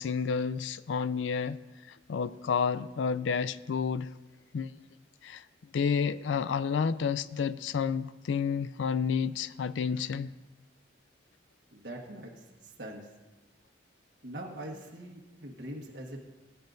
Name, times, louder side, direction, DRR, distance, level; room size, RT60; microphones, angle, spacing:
voice 1, 0.0-1.6 1.9-4.1 4.5-4.7 5.2-5.4 5.7-10.3, left 6 dB, 80° left, 0.4 m, -30 dB
voice 2, 11.7-13.1 14.2-16.2, right 1 dB, 60° right, 1.4 m, -43 dB
19.5 x 9.1 x 2.6 m
head